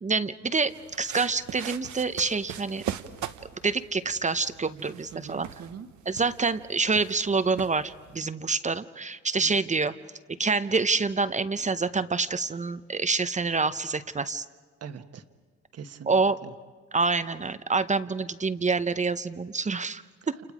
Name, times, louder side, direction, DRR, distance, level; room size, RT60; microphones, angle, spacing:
voice 1, 0.0-0.7 1.0-2.8 3.6-5.5 6.1-9.9 10.4-14.4 16.1-16.4 16.9-20.0, right 4 dB, 25° right, 12 dB, 0.8 m, -27 dB
sound 1, 0.7-8.2, right 10 dB, 75° right, 1.0 m, -41 dB
voice 2, 4.6-5.9 9.4-9.5 14.8-15.2 15.7-16.5 20.2-20.4, right 7 dB, 55° right, 8 dB, 1.4 m, -43 dB
30.0 x 28.5 x 5.0 m, 1.5 s
cardioid pair, 90°, 30 cm